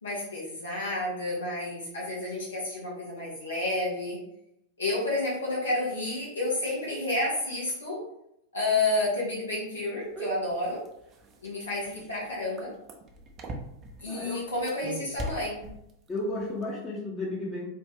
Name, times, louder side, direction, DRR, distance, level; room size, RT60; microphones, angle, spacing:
voice 1, 0.0-4.2 4.8-8.0 8.5-10.8 11.4-12.7 14.0-15.7, left 2 dB, 75° left, -6 dB, 1.3 m, -30 dB
sound 1, 10.2-14.1 14.6-16.1 16.4-16.7, right 2 dB, 30° right, 0.6 m, -39 dB
voice 2, 14.1-14.4 16.1-17.7, left 2 dB, 20° left, -6 dB, 0.9 m, -33 dB
4.2 x 2.6 x 3.5 m, 0.79 s
figure-of-eight pair, 90°, 0 cm